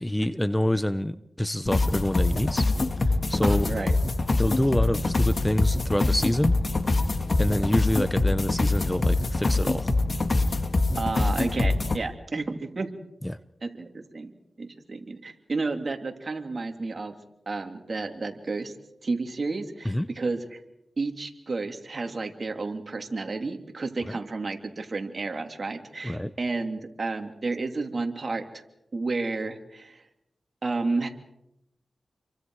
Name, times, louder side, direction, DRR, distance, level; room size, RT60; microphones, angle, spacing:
voice 1, 0.0-2.7 3.3-3.7 4.4-6.6 7.4-9.9 13.2-13.4 19.8-20.1 24.1-24.2 26.0-26.3, left 1 dB, 10° left, 13 dB, 0.8 m, -26 dB
sound 1, 1.7-12.0, left 2 dB, 50° left, 1.9 m, -24 dB
voice 2, 3.4-3.9 11.0-12.9 13.6-17.1 17.5-18.7 19.0-20.6 21.0-28.6 28.9-30.1 30.6-31.1, right 3 dB, 50° right, 4 dB, 2.9 m, -31 dB
29.5 x 24.0 x 4.8 m, 0.83 s
cardioid pair, 65°, 0 cm